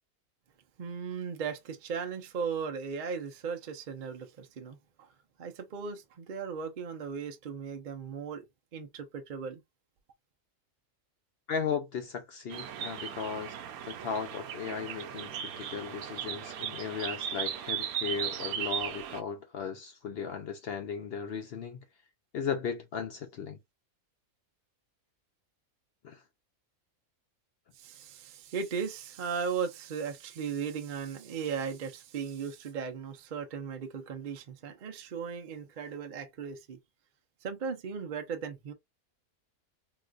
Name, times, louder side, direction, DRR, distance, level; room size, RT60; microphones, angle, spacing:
voice 1, 0.8-5.1 5.4-8.5 8.7-9.6 27.8-36.8 37.4-38.7, right 6 dB, 55° right, 0.5 m, -37 dB
voice 2, 11.5-13.6 13.8-21.8 22.3-23.6 26.0-26.2, left 6 dB, 65° left, 0.6 m, -36 dB
sound 1, 12.5-19.2, right 9 dB, 85° right, 1.0 m, -37 dB
3.9 x 2.4 x 2.4 m
omnidirectional pair, 1.5 m